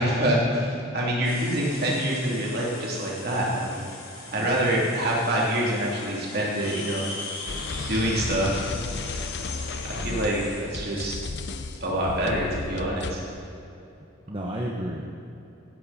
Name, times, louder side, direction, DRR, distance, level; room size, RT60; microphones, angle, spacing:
voice 1, 0.0-4.0 4.3-7.1 7.9-8.6 9.8-11.2 11.8-13.2, right 1 dB, 45° right, -4 dB, 3.0 m, -26 dB
sound 1, 1.2-12.6, left 3 dB, 80° left, 3.3 m, -41 dB
voice 2, 4.4-4.7 10.0-10.3 14.3-15.1, right 1 dB, 25° right, -3 dB, 1.0 m, -33 dB
sound 2, 7.5-13.1, left 3 dB, 50° left, 0.6 m, -34 dB
16.0 x 10.0 x 4.3 m, 2.8 s
head